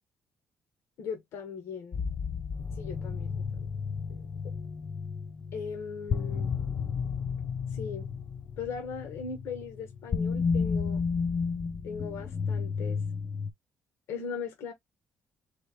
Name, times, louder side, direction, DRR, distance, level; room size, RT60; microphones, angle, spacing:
voice 1, 1.0-2.0 2.7-3.7 4.1-4.2 5.5-6.6 7.7-8.1 8.6-11.0 11.8-13.0 14.1-14.7, left 6 dB, 85° left, 1.1 m, -39 dB
sound 1, 1.9-13.5, left 5 dB, 35° left, 0.4 m, -32 dB
3.3 x 3.3 x 3.2 m
cardioid pair, 130°, 4 cm